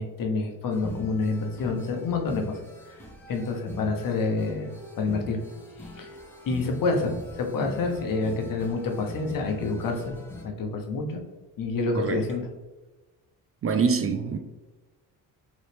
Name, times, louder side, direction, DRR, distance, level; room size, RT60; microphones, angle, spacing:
voice 1, 0.0-2.6 2.9-3.0 3.3-5.4 6.0-6.1 6.5-10.2 10.4-11.2 11.6-12.5, left 3 dB, 55° left, 0.9 m, -28 dB
sound 1, 0.7-10.4, left 2 dB, 5° left, 1.0 m, -41 dB
voice 2, 13.6-14.4, right 5 dB, 35° right, 0.4 m, -25 dB
3.9 x 3.1 x 3.3 m
supercardioid pair, 75°, 40 cm